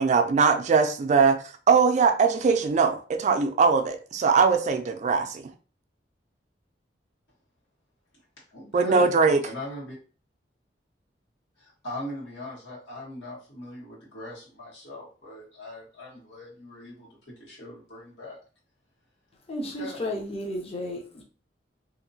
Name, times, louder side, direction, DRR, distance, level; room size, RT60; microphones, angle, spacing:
voice 1, 0.0-5.5 8.7-9.4, right 5 dB, 40° right, 0.3 m, -21 dB
voice 2, 8.5-9.1 9.4-10.0 11.6-17.1 17.4-18.4 19.6-20.0, left 1 dB, 85° left, 1.6 m, -40 dB
voice 3, 19.5-21.2, left 1 dB, 35° left, 0.5 m, -33 dB
2.8 x 2.5 x 2.6 m
head